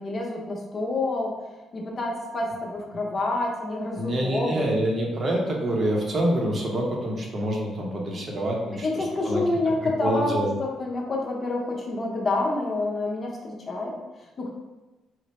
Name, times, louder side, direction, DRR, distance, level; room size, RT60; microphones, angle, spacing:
voice 1, 0.0-1.3 1.7-4.7 8.8-13.9 14.4-14.5, left 2 dB, 40° left, -1 dB, 0.7 m, -28 dB
voice 2, 4.0-9.4 10.0-10.6, right 1 dB, 45° right, -2 dB, 0.8 m, -26 dB
3.2 x 2.0 x 4.1 m, 1.1 s
cardioid pair, 90°, 0 cm